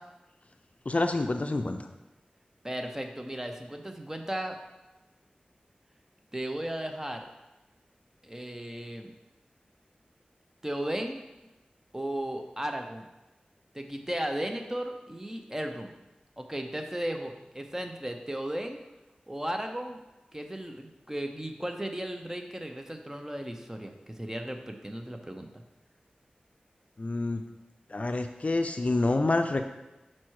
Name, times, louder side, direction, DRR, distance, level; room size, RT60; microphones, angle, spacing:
voice 1, 0.9-1.9 27.0-27.4 27.9-29.6, left 2 dB, 50° left, 6 dB, 0.4 m, -27 dB
voice 2, 2.6-4.6 6.3-7.3 8.2-9.1 10.6-11.2 11.9-13.1 13.7-15.9 16.4-18.8 19.3-20.0 20.3-25.6, right 1 dB, 15° right, 4 dB, 0.8 m, -35 dB
6.1 x 4.4 x 4.7 m, 1.0 s
wide cardioid pair, 50°, 3 cm